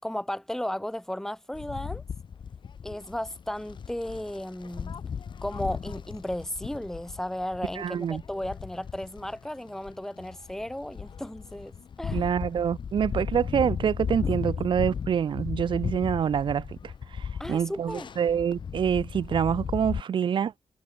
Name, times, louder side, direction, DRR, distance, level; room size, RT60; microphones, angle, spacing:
voice 1, 0.0-2.0 2.8-5.0 5.4-12.3 17.4-18.1, left 1 dB, 5° left, 3.6 m, -34 dB
sound 1, 1.5-20.0, left 7 dB, 50° left, 2.7 m, -36 dB
voice 2, 7.8-8.2 12.1-20.5, right 8 dB, 55° right, 0.7 m, -26 dB
cardioid pair, 120°, 10 cm